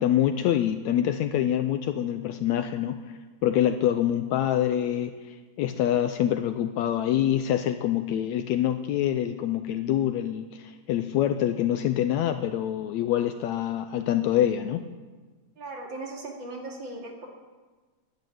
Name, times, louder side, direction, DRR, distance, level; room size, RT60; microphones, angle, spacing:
voice 1, 0.0-14.8, left 11 dB, 80° left, 8 dB, 1.9 m, -26 dB
voice 2, 15.6-17.3, right 2 dB, 40° right, 0 dB, 2.8 m, -38 dB
13.0 x 11.5 x 9.4 m, 1.3 s
omnidirectional pair, 3.5 m